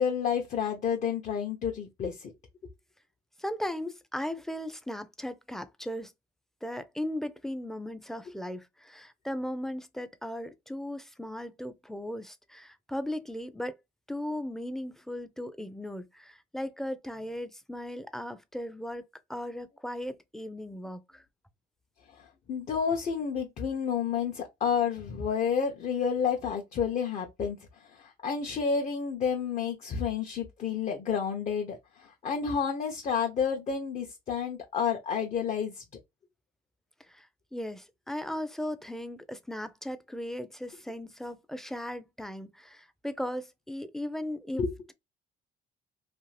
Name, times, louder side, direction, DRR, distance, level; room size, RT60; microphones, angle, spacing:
voice 1, 0.0-2.3 22.1-35.8 44.6-44.7, left 6 dB, 45° left, 0.6 m, -30 dB
voice 2, 3.4-6.1 6.6-13.7 14.1-19.0 19.3-21.2 37.0-44.9, left 1 dB, ahead, 0.4 m, -37 dB
2.6 x 2.4 x 3.1 m
cardioid pair, 110°, 17 cm